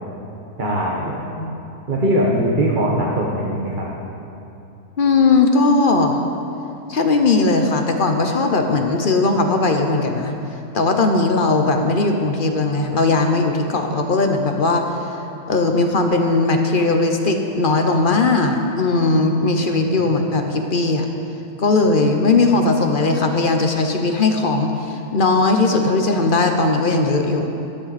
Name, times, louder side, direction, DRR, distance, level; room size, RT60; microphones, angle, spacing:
voice 1, 0.6-1.2 1.9-3.9, right 1 dB, 35° right, -4 dB, 1.3 m, -20 dB
voice 2, 5.0-6.2 6.9-10.4 10.7-14.8 15.5-21.1 21.6-27.5, left 3 dB, 40° left, 4 dB, 0.8 m, -18 dB
13.5 x 12.5 x 4.2 m, 2.8 s
omnidirectional pair, 1.6 m